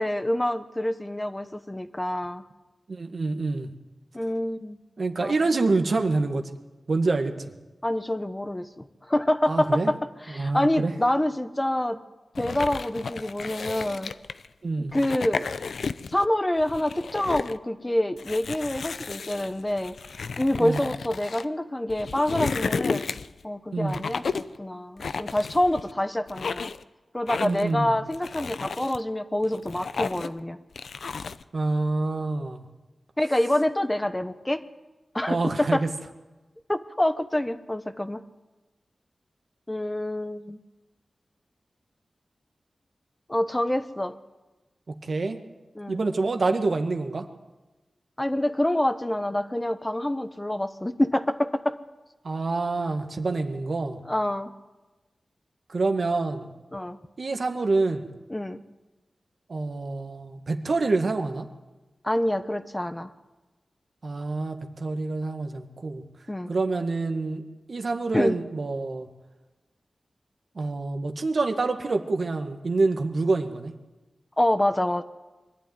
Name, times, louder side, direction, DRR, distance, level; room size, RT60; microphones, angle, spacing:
voice 1, 0.0-2.4 4.1-4.8 5.2-5.4 7.8-10.0 10.3-12.0 12.4-14.1 14.9-15.4 16.1-19.9 20.4-23.1 23.4-26.7 27.1-30.6 33.2-34.6 35.1-35.8 36.7-38.2 39.7-40.6 43.3-44.1 45.7-46.0 48.2-51.8 54.0-54.5 56.7-57.0 58.3-58.6 62.0-63.1 66.3-66.5 68.1-68.4 74.4-75.0, left 1 dB, 20° left, 10 dB, 1.1 m, -26 dB
voice 2, 2.9-3.7 5.0-6.5 6.9-7.3 9.5-9.9 10.3-10.9 14.6-14.9 20.6-20.8 23.7-24.0 27.4-28.0 31.5-32.6 35.3-35.9 45.0-45.4 45.9-47.2 52.2-54.0 55.7-56.5 57.2-58.1 59.5-61.5 64.0-66.0 66.5-67.4 67.7-69.1 70.5-73.7, right 3 dB, 65° right, 5 dB, 1.8 m, -26 dB
sound 1, 12.3-14.5 14.9-16.3 16.6-17.6 18.2-21.4 21.9-23.4 23.9-24.6 25.0-25.9 26.3-26.8 27.3-27.7 28.1-29.0 29.4-30.4 30.8-31.4, left 5 dB, 85° left, 0.6 m, -33 dB
22.5 x 12.0 x 9.6 m, 1.2 s
wide cardioid pair, 60°, 0 cm